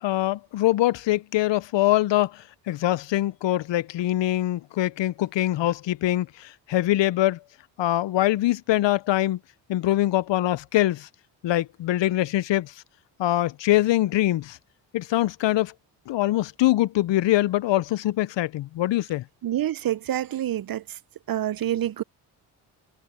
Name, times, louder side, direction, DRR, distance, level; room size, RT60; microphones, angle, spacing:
voice 1, 0.0-7.4 7.8-9.4 9.7-11.1 11.4-12.7 13.2-14.6 14.9-15.7 16.1-19.2, left 15 dB, 65° left, 0.8 m, -23 dB
voice 2, 19.4-20.8 21.3-22.0, right 12 dB, 45° right, 0.7 m, -27 dB
hypercardioid pair, 45°, 48 cm